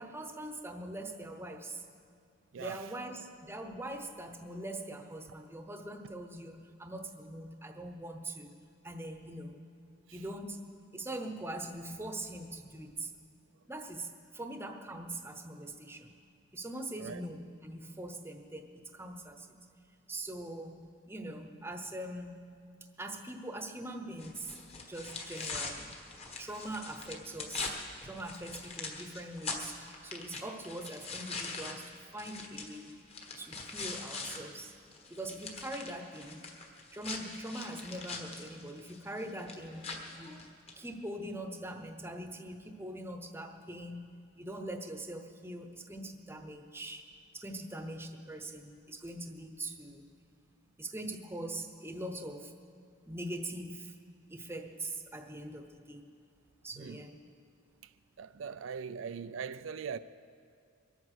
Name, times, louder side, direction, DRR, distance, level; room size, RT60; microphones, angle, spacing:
voice 1, 0.0-1.8 2.6-8.5 8.8-9.6 10.1-10.6 10.9-13.1 13.7-16.1 16.5-19.6 20.1-22.4 23.0-24.6 24.9-26.0 26.4-27.7 28.0-32.9 33.4-34.7 35.1-36.5 36.9-40.4 40.8-44.1 44.4-47.1 47.3-50.1 50.8-52.5 53.1-53.9 54.3-56.0 56.6-57.2, right 1 dB, 10° right, 0.9 m, -42 dB
voice 2, 2.5-2.9 10.1-10.2 17.0-17.2 25.0-25.5 56.8-57.1 57.8-57.9 58.2-60.0, right 6 dB, 80° right, 0.4 m, -41 dB
sound 1, 24.2-34.4 34.7-40.8, left 3 dB, 30° left, 1.5 m, -42 dB
23.0 x 8.9 x 6.5 m
head